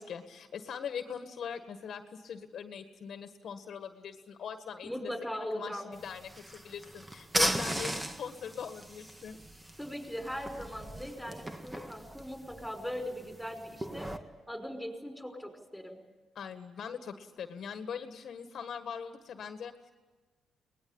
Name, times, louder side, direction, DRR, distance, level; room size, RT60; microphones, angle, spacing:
voice 1, 0.0-9.4 16.3-19.9, left 7 dB, 60° left, 7 dB, 1.6 m, -41 dB
voice 2, 4.8-5.9 9.8-14.1 14.5-16.0, equal, ahead, 4 dB, 5.4 m, -39 dB
sound 1, 5.9-14.2, right 1 dB, 15° right, 1.7 m, -37 dB
23.0 x 20.0 x 8.8 m, 1.3 s
cardioid pair, 90°, 0 cm